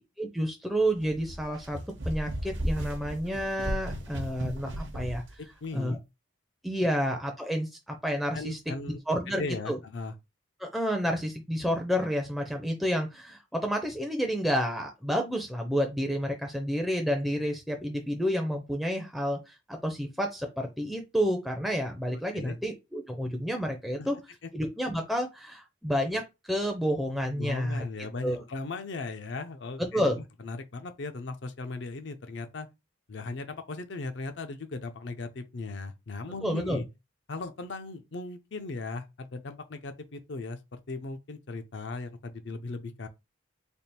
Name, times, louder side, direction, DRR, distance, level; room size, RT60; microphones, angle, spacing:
voice 1, 0.2-1.8 2.0-5.2 5.7-6.0 6.6-8.6 9.1-9.8 10.6-24.2 24.5-27.8 28.2-28.4 29.8-30.2 36.4-36.8, equal, ahead, 0.5 m, -30 dB
sound 1, 1.0-5.3, equal, 60° right, 0.8 m, -35 dB
voice 2, 5.4-6.0 8.3-9.0 9.4-10.1 22.3-22.6 24.0-24.1 27.4-32.7 33.1-36.9 37.3-43.1, left 3 dB, 60° left, 0.5 m, -37 dB
3.4 x 2.4 x 4.2 m
head